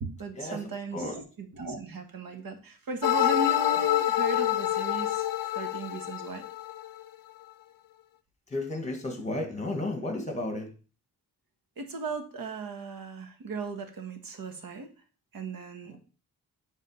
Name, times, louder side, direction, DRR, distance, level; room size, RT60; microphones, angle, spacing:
voice 1, 0.0-5.2 5.5-6.4 11.8-14.9 15.3-16.0, right 3 dB, 65° right, 5 dB, 1.4 m, -37 dB
sound 1, 3.0-7.0, left 13 dB, 65° left, 0.5 m, -27 dB
voice 2, 8.5-10.7 15.9-16.0, left 2 dB, 20° left, 4 dB, 1.7 m, -33 dB
7.9 x 3.6 x 5.6 m, 0.36 s
wide cardioid pair, 145°, 37 cm